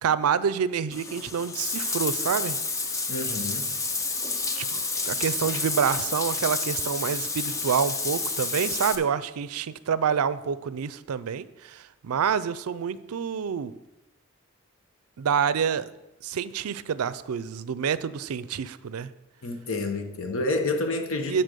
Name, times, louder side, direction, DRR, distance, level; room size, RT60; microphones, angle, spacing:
voice 1, 0.0-2.6 4.6-13.7 15.2-15.9 16.2-19.1 21.3-21.4, right 7 dB, 90° right, 16 dB, 0.4 m, -27 dB
Bathtub (filling or washing), 0.9-8.9, left 3 dB, 15° left, 0.4 m, -30 dB
voice 2, 3.1-3.7 19.4-21.4, left 2 dB, 65° left, 5 dB, 1.0 m, -29 dB
9.8 x 4.3 x 6.8 m, 0.97 s
head